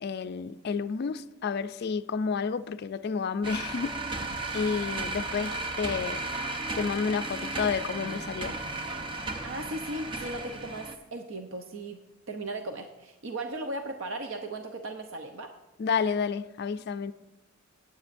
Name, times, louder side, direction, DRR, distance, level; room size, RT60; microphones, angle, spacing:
voice 1, 0.0-4.0 4.5-6.2 6.8-8.5 15.8-17.1, left 5 dB, 50° left, 12 dB, 0.3 m, -30 dB
sound 1, 3.4-11.0, right 2 dB, 25° right, 0.7 m, -34 dB
voice 2, 9.4-12.0 12.3-15.5, right 2 dB, 70° right, 5 dB, 0.7 m, -37 dB
17.0 x 9.6 x 2.6 m, 1.1 s
head